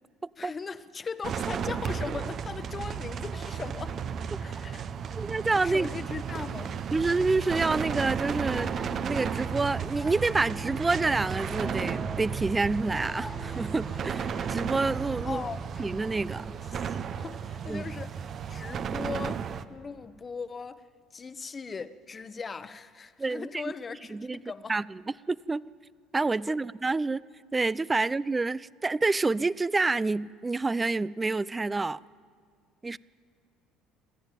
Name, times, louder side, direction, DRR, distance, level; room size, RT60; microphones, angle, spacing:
voice 1, 0.4-4.0 4.4-4.9 5.6-6.7 15.2-15.6 16.7-20.9 21.1-24.8, left 5 dB, 30° left, 1.0 m, -39 dB
sound 1, 1.2-19.6, right 7 dB, 45° right, 0.9 m, -34 dB
voice 2, 5.1-5.9 6.9-8.7 9.0-15.4 15.8-16.5 17.7-17.8 23.2-23.6 24.1-24.4 24.7-25.0 25.3-25.7 26.1-27.2 27.5-32.0 32.8-33.0, right 3 dB, 20° right, 0.4 m, -28 dB
sound 2, 7.4-16.7, left 1 dB, 5° left, 1.6 m, -45 dB
24.0 x 14.0 x 9.0 m
supercardioid pair, 100°, 0 cm